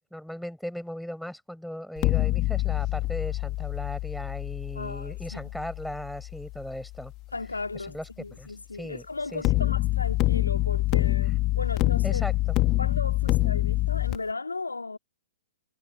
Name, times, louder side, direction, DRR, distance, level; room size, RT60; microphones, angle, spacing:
voice 1, 0.1-7.1 7.7-8.1 8.4-9.1 9.3-9.7 12.0-12.6 13.3-13.5, equal, ahead, 7.5 m, -38 dB
sound 1, 2.0-7.0 9.4-14.2, left 19 dB, 30° left, 2.1 m, -26 dB
voice 2, 4.7-5.5 7.3-12.2 12.8-15.0, left 3 dB, 80° left, 2.9 m, -36 dB
figure-of-eight pair, 115°, 0 cm